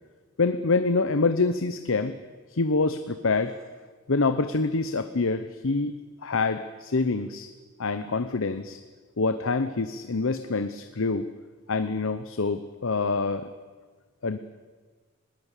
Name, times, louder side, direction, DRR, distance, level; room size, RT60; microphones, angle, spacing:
voice 1, 0.4-2.2 2.5-3.6 4.1-5.9 6.2-7.5 7.8-8.8 9.2-11.3 11.7-13.5 14.2-14.4, left 3 dB, 65° left, 10 dB, 0.9 m, -26 dB
20.5 x 19.0 x 8.3 m, 1.4 s
head